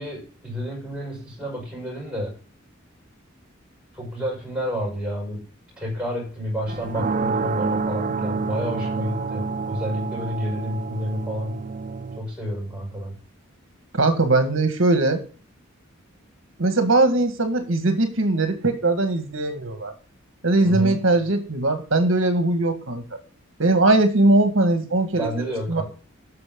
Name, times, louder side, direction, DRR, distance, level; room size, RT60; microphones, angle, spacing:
voice 1, 0.0-2.3 3.9-5.4 5.8-11.6 12.2-13.1 20.6-21.0 25.1-25.8, equal, 5° right, -4 dB, 6.0 m, -30 dB
sound 1, 6.7-12.2, right 4 dB, 40° right, 0.4 m, -28 dB
voice 2, 13.9-15.2 16.6-19.9 20.4-23.2 23.6-25.8, right 2 dB, 70° right, 7 dB, 1.7 m, -20 dB
14.5 x 6.3 x 3.8 m, 0.39 s
head